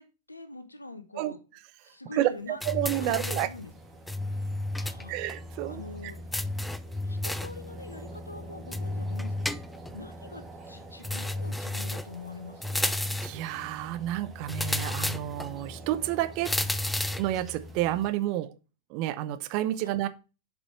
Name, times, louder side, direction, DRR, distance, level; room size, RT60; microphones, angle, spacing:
voice 1, 0.0-1.4 1.8-2.6 3.0-3.7 4.2-5.1 5.6-6.2 7.0-9.5 9.9-13.0 19.8-19.9, left 3 dB, 85° left, 1.1 m, -44 dB
voice 2, 2.1-3.5 5.1-5.8 13.2-16.5 17.2-18.5 18.9-20.1, right 14 dB, 45° right, 0.7 m, -30 dB
sound 1, 2.6-3.6 4.1-5.0 5.3-5.4 6.3-7.6 8.7-10.0 11.0-12.2 12.6-13.4 14.5-15.5 16.4-17.3, left 1 dB, 5° left, 0.4 m, -31 dB
sound 2, 2.8-18.1, equal, 15° right, 1.8 m, -45 dB
7.0 x 5.4 x 4.6 m
figure-of-eight pair, 90°, 0 cm